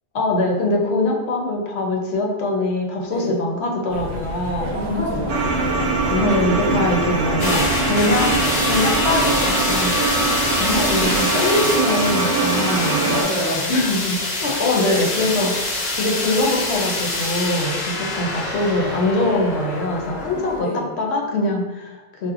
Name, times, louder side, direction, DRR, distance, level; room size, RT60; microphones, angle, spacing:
voice 1, 0.1-4.7 6.1-13.0 13.7-15.5 15.9-20.7 21.0-22.3, left 2 dB, 75° left, 0 dB, 0.8 m, -23 dB
sound 1, 3.9-11.2, right 1 dB, 65° right, 0.8 m, -31 dB
voice 2, 4.6-5.4 7.4-7.6 12.6-13.7 20.6-20.8, equal, 35° right, -6 dB, 0.7 m, -27 dB
sound 2, 5.3-13.2, right 3 dB, 90° right, 0.9 m, -22 dB
sound 3, 7.4-20.6, left 2 dB, 45° left, 0.6 m, -25 dB
4.1 x 2.0 x 2.4 m, 1.1 s
omnidirectional pair, 1.1 m